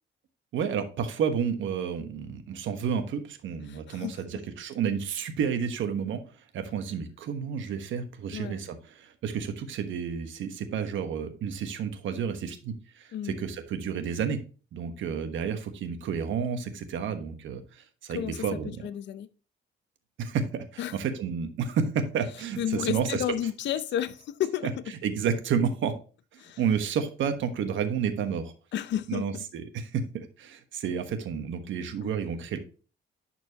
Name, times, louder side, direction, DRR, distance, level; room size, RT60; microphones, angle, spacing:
voice 1, 0.5-6.2 6.5-14.4 14.7-18.8 20.2-23.2 24.6-24.7 25.0-26.0 26.6-28.5 29.1-32.6, right 7 dB, 75° right, 1.2 m, -31 dB
voice 2, 3.7-4.1 8.3-8.7 13.1-13.4 18.1-19.3 20.8-21.0 22.6-24.7 26.4-26.6 28.7-29.4 32.0-32.1, left 10 dB, 65° left, 0.5 m, -32 dB
11.0 x 4.5 x 2.9 m
cardioid pair, 90°, 20 cm